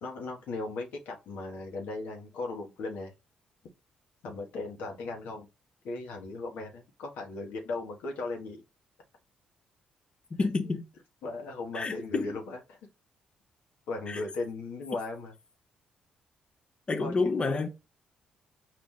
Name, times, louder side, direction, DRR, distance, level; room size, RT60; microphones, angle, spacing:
voice 1, 0.0-3.1 4.2-5.5 5.8-8.6 10.7-10.8 11.2-12.8 13.9-15.3 17.0-17.3, left 3 dB, 80° left, 1.2 m, -37 dB
voice 2, 10.3-10.8 11.7-12.3 14.1-14.2 16.9-17.7, left 3 dB, 35° left, 0.7 m, -29 dB
4.7 x 2.6 x 3.6 m
supercardioid pair, 65°, 3 cm